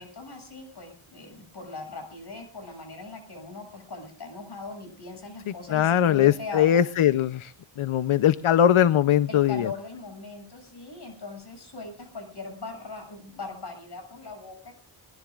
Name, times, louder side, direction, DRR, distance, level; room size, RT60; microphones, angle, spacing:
voice 1, 0.0-6.8 9.3-14.8, left 3 dB, 55° left, 4 dB, 7.4 m, -40 dB
voice 2, 5.7-9.7, left 10 dB, 85° left, 14 dB, 0.7 m, -21 dB
21.5 x 21.0 x 2.4 m, 0.40 s
wide cardioid pair, 155°, 48 cm